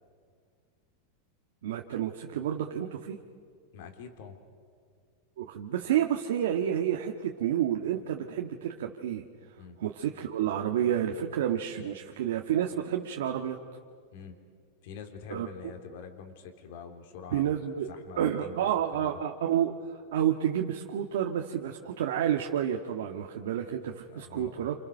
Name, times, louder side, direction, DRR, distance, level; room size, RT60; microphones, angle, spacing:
voice 1, 1.6-3.2 5.4-9.3 9.8-13.6 15.3-15.5 17.3-17.9 18.2-19.7 20.1-24.7, right 10 dB, 80° right, 2 dB, 1.6 m, -30 dB
voice 2, 3.7-4.4 9.6-9.8 14.1-14.4 14.8-19.2 24.1-24.7, left 6 dB, 65° left, 6 dB, 3.6 m, -45 dB
29.0 x 27.5 x 6.7 m, 2.1 s
supercardioid pair, 135°, 0 cm